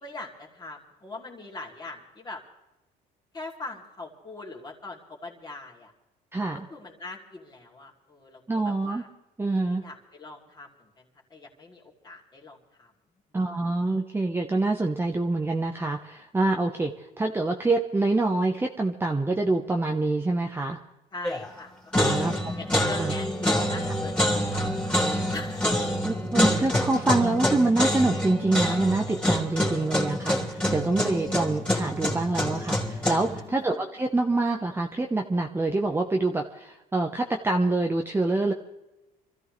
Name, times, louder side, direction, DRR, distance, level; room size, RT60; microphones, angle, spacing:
voice 1, 0.0-2.4 3.3-5.9 6.7-9.1 9.8-12.9 21.1-21.7 22.0-22.3 22.6-25.0 25.3-25.7 31.4-31.5 33.4-33.8, left 2 dB, 25° left, -2 dB, 2.9 m, -42 dB
voice 2, 6.3-6.7 8.5-9.0 9.4-9.8 13.3-20.8 22.0-22.3 23.0-23.1 26.0-38.5, right 2 dB, 15° right, 2 dB, 1.0 m, -26 dB
sound 1, 21.2-21.6 21.9-33.4, equal, 5° left, 3.2 m, -26 dB
26.5 x 14.0 x 3.3 m, 0.99 s
cardioid pair, 110°, 17 cm